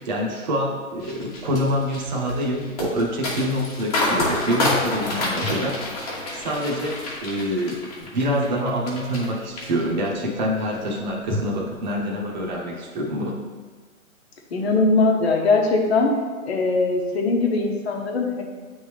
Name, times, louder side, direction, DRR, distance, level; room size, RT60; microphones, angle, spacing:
voice 1, 0.0-7.0 7.2-13.4, equal, 30° right, -2 dB, 1.1 m, -26 dB
sound 1, 1.0-9.3 9.6-10.2 10.6-10.9, left 2 dB, 25° left, 1.3 m, -28 dB
sound 2, 5.4-8.0 11.3-12.2, equal, 5° right, 1.1 m, -37 dB
voice 2, 14.5-16.1 16.5-18.4, left 3 dB, 45° left, 1 dB, 1.1 m, -20 dB
8.8 x 3.6 x 3.4 m, 1.4 s
hypercardioid pair, 160°, 42 cm